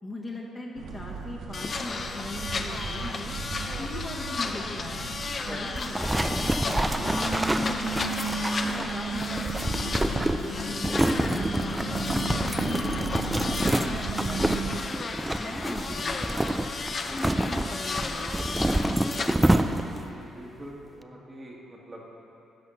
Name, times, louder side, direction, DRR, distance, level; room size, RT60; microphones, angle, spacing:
voice 1, 0.0-3.4 3.8-5.1 5.4-8.2 8.6-15.0 15.4-16.7 17.1-19.0, left 1 dB, 20° left, -3 dB, 1.2 m, -39 dB
sound 1, 0.8-14.8, right 3 dB, 70° right, 0.8 m, -35 dB
sound 2, 1.5-19.3, left 4 dB, 40° left, 0.5 m, -34 dB
voice 2, 5.5-5.8 15.8-16.0 19.2-19.4 20.1-22.1, right 1 dB, 25° right, -3 dB, 1.6 m, -43 dB
sound 3, 5.7-20.1, right 1 dB, 10° right, 0.4 m, -28 dB
11.5 x 4.2 x 6.3 m, 3.0 s
cardioid pair, 90°, 0 cm